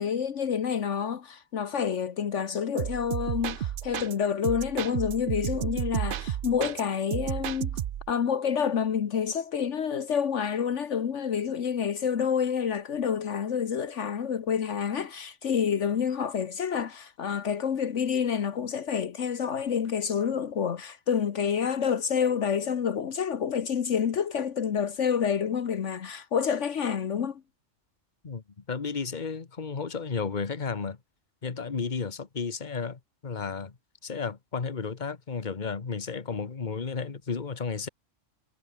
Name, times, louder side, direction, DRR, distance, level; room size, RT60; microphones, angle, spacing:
voice 1, 0.0-7.8 8.1-27.4, left 7 dB, 70° left, 1.4 m, -28 dB
sound 1, 2.8-4.1 4.4-6.8 7.1-8.1, right 10 dB, 55° right, 0.6 m, -32 dB
voice 2, 28.2-31.0 31.4-33.7 34.0-37.9, left 5 dB, 35° left, 1.5 m, -33 dB
omnidirectional pair, 1.3 m